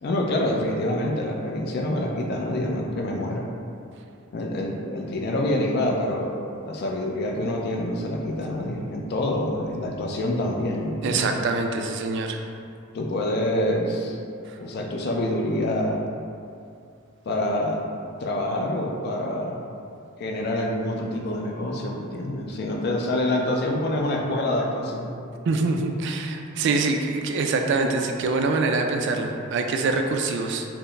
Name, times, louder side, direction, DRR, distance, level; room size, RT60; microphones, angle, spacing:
voice 1, 0.0-3.5 4.3-6.3 6.7-11.3 12.9-14.2 14.6-16.0 17.3-17.8 18.2-19.5 20.2-25.1, left 1 dB, 50° left, 0 dB, 0.4 m, -26 dB
voice 2, 11.0-12.4 25.5-30.7, right 3 dB, 60° right, 4 dB, 0.3 m, -24 dB
4.5 x 2.0 x 3.2 m, 2.4 s
head